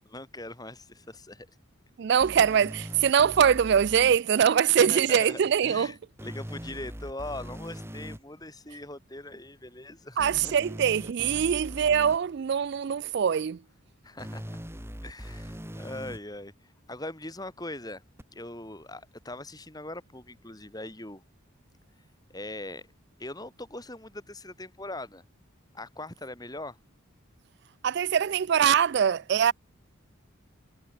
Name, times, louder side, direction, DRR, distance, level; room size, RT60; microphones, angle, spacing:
voice 1, 0.1-1.5 4.8-10.5 14.0-14.4 15.0-16.5 16.9-18.0 18.3-21.2 22.3-22.8 23.2-25.2 25.7-26.8, left 1 dB, 20° left, 3.9 m, -41 dB
voice 2, 2.0-5.9 10.2-13.6 27.8-29.5, right 8 dB, 50° right, 0.3 m, -23 dB
sound 1, 2.2-4.2 6.2-8.2 10.2-12.2 14.2-16.2 18.2-18.3, equal, 10° right, 4.1 m, -41 dB
head